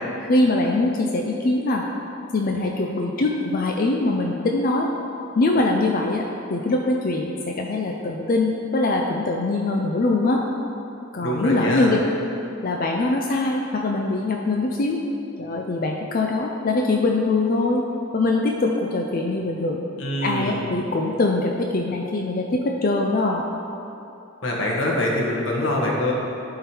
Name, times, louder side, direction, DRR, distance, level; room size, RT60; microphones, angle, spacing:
voice 1, 0.2-1.9 2.3-4.9 5.4-10.4 11.1-12.0 12.6-15.0 15.4-17.8 18.1-19.8 20.2-23.5, left 2 dB, 45° left, 1 dB, 0.5 m, -22 dB
voice 2, 11.2-11.9 20.0-20.6 24.4-26.1, left 1 dB, 70° left, -3 dB, 1.3 m, -24 dB
11.5 x 3.9 x 4.4 m, 2.9 s
head